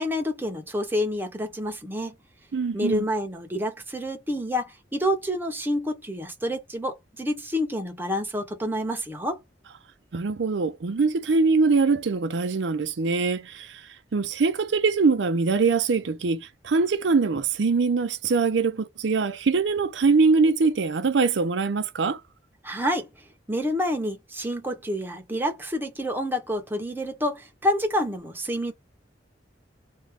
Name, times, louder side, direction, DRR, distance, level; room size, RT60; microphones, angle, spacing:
voice 1, 0.0-2.1 2.7-9.4 22.6-23.1 23.5-28.7, equal, 10° right, 1.0 m, -28 dB
voice 2, 2.5-3.1 10.1-13.8 14.1-22.2, right 4 dB, 75° right, 0.5 m, -23 dB
3.3 x 2.6 x 3.4 m
head